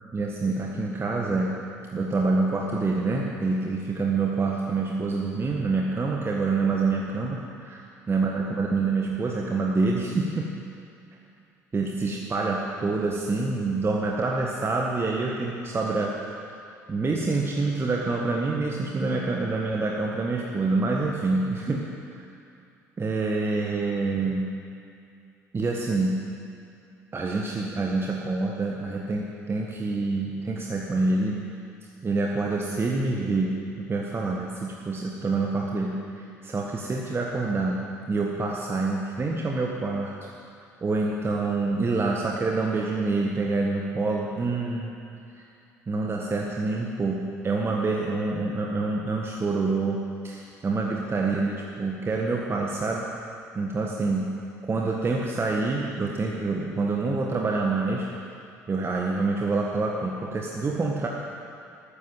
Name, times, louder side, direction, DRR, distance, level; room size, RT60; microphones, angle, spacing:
voice 1, 0.1-1.6 1.9-10.6 11.7-16.2 16.9-22.2 23.0-24.5 25.5-26.2 27.1-31.4 32.0-40.2 40.6-44.9 45.9-53.1 53.5-54.4 54.7-58.1 58.7-61.1, right 3 dB, 30° right, -1 dB, 1.6 m, -27 dB
13.5 x 13.5 x 7.5 m, 2.6 s
figure-of-eight pair, 55°, 9 cm